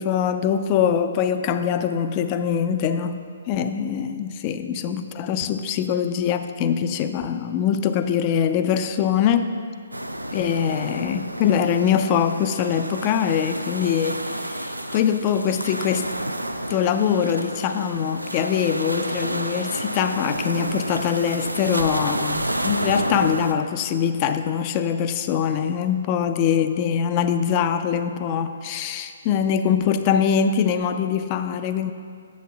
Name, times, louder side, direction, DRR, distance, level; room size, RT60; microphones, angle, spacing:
voice 1, 0.0-3.2 3.5-9.5 10.3-16.1 16.7-31.9, left 8 dB, 30° left, 9 dB, 0.4 m, -23 dB
sound 1, 9.9-23.5, right 1 dB, 85° right, 0.4 m, -30 dB
8.4 x 7.3 x 3.4 m, 2.2 s
figure-of-eight pair, 130°, 0 cm